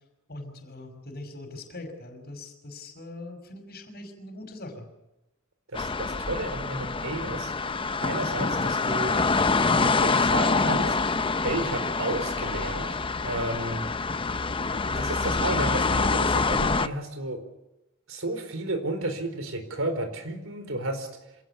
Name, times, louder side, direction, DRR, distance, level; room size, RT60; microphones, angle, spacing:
voice 1, 0.3-4.9, left 2 dB, 50° left, 5 dB, 5.6 m, -41 dB
sound 1, 5.7-16.9, left 4 dB, 25° left, 0.7 m, -26 dB
voice 2, 5.7-7.5 8.0-9.2 9.7-10.9 11.4-13.9 14.9-17.4 18.1-21.1, right 2 dB, 70° right, 8 dB, 4.4 m, -32 dB
27.0 x 17.5 x 7.1 m, 0.91 s
head